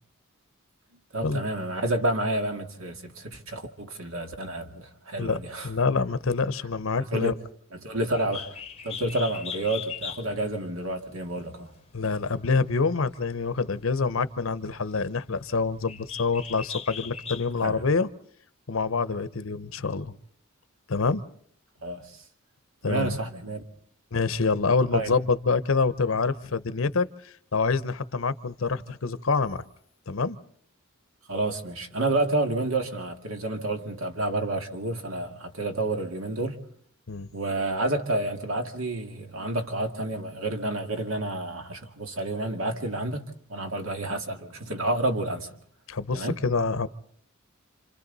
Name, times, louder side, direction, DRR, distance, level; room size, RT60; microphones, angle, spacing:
voice 1, 1.1-5.7 7.0-7.4 7.7-11.7 17.6-17.8 21.8-22.2 22.8-23.6 24.9-25.2 31.3-36.6 37.3-45.6 46.1-46.4, right 2 dB, 75° right, 2.2 m, -29 dB
voice 2, 5.6-7.3 11.9-18.1 18.7-20.1 20.9-21.2 22.8-23.2 24.1-29.6 30.1-30.4 37.1-37.3 45.9-46.9, left 4 dB, 70° left, 0.8 m, -26 dB
Bird, 8.1-17.7, left 7 dB, 30° left, 0.8 m, -41 dB
29.0 x 26.5 x 4.0 m
head